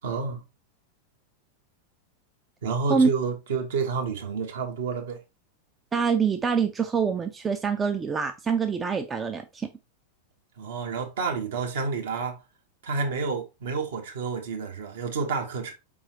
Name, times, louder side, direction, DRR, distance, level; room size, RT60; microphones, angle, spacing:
voice 1, 0.0-0.4 2.6-5.2 10.6-12.4 12.8-15.7, right 5 dB, 60° right, 1.2 m, -29 dB
voice 2, 5.9-9.7, right 5 dB, 15° right, 0.5 m, -25 dB
4.7 x 3.9 x 2.9 m
figure-of-eight pair, 90°, 0 cm